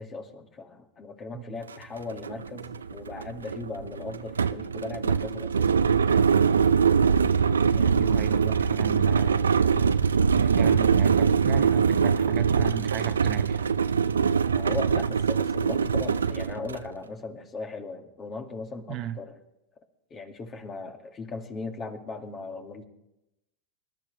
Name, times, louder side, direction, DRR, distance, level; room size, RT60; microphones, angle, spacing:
voice 1, 0.0-5.7 7.7-8.0 14.5-19.4 20.1-22.8, left 3 dB, 30° left, 2.1 m, -38 dB
sound 1, 1.7-1.8 2.1-16.9, right 6 dB, 85° right, 0.4 m, -23 dB
voice 2, 7.8-9.4 10.3-13.7 18.9-19.2, right 13 dB, 45° right, 0.9 m, -34 dB
25.0 x 12.0 x 3.3 m
hypercardioid pair, 90°, 0 cm